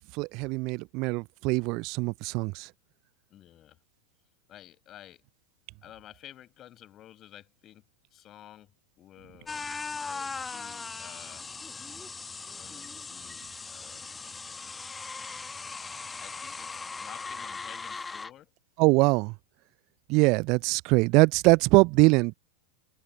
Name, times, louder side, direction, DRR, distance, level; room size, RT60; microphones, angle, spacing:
voice 1, 0.1-2.7 18.8-19.3 20.1-22.3, right 26 dB, 40° right, 0.3 m, -23 dB
voice 2, 3.3-3.8 4.5-5.2 5.8-11.5 12.5-14.1 15.6-15.8 16.2-18.5, left 12 dB, 30° left, 8.0 m, -52 dB
sound 1, 9.5-18.3, left 4 dB, 15° left, 1.4 m, -39 dB
figure-of-eight pair, 90°, 0 cm